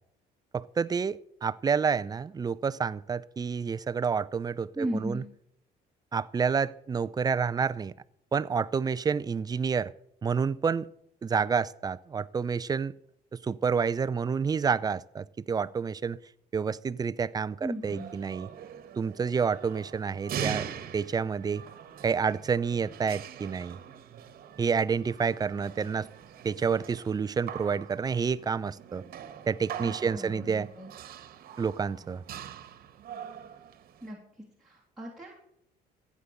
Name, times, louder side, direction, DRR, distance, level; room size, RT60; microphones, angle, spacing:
voice 1, 0.5-5.2 6.1-7.9 8.3-9.9 10.2-10.9 11.2-12.9 13.3-16.2 16.5-18.5 19.0-20.7 20.9-21.6 22.0-23.8 24.6-26.1 26.4-29.0 29.5-30.7 31.6-32.2, right 6 dB, 25° right, 16 dB, 0.5 m, -29 dB
voice 2, 4.7-5.2 17.6-18.1 29.8-30.9 34.0-34.2 34.6-35.3, right 1 dB, ahead, -5 dB, 2.9 m, -36 dB
sound 1, 17.8-34.1, right 9 dB, 60° right, 1.4 m, -42 dB
15.0 x 8.5 x 6.6 m, 0.73 s
cardioid pair, 110°, 17 cm